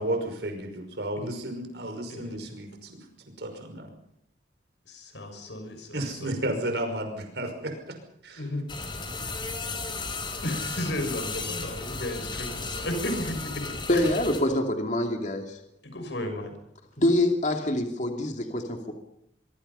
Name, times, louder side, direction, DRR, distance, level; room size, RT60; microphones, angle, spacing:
voice 1, 0.0-3.9 5.9-8.0 8.2-8.5, right 1 dB, 70° right, 5 dB, 5.6 m, -33 dB
voice 2, 4.9-6.3 8.4-8.6 10.4-13.6 13.9-14.1 15.8-16.5, left 1 dB, 80° left, 6 dB, 6.3 m, -34 dB
sound 1, 8.7-14.4, left 3 dB, 25° left, 4.1 m, -34 dB
voice 3, 13.9-15.6 17.0-18.9, left 1 dB, 45° left, 4 dB, 2.7 m, -25 dB
24.5 x 23.5 x 5.6 m, 0.75 s
head